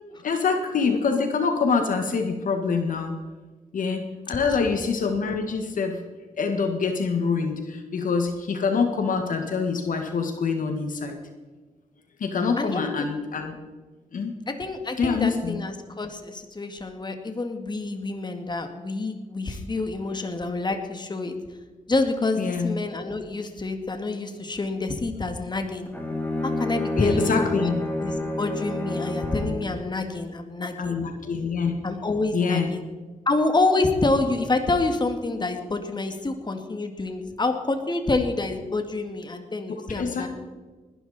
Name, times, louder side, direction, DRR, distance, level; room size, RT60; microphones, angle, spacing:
voice 1, 0.2-3.2 3.7-6.0 6.4-11.2 12.2-13.6 14.1-14.3 15.0-15.6 22.4-22.8 27.0-27.8 30.8-31.7 32.3-32.7 39.9-40.3, left 5 dB, 75° left, 5 dB, 1.7 m, -25 dB
voice 2, 12.6-13.0 14.5-21.4 21.9-25.9 26.4-27.6 28.0-31.0 31.8-32.8 33.3-40.3, left 2 dB, 30° left, 6 dB, 2.1 m, -27 dB
Bowed string instrument, 25.9-29.7, left 2 dB, 15° left, 3.6 m, -29 dB
19.5 x 12.5 x 4.3 m, 1.3 s
cardioid pair, 70°, 14 cm